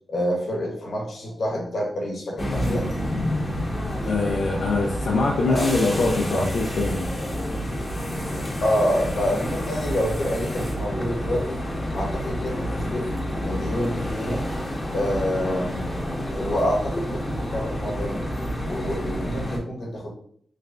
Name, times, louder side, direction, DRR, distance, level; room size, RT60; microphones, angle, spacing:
voice 1, 0.1-2.9 5.5-5.7 6.3-6.4 8.6-11.6 11.9-13.1 13.4-14.4 14.9-16.0 16.3-18.2 18.6-20.1, equal, 65° left, 0 dB, 1.1 m, -27 dB
sound 1, 2.4-19.6, equal, 25° left, 1.0 m, -29 dB
voice 2, 4.0-7.1, left 3 dB, 85° left, -2 dB, 0.5 m, -23 dB
3.2 x 2.5 x 3.4 m, 0.63 s
cardioid pair, 75°, 0 cm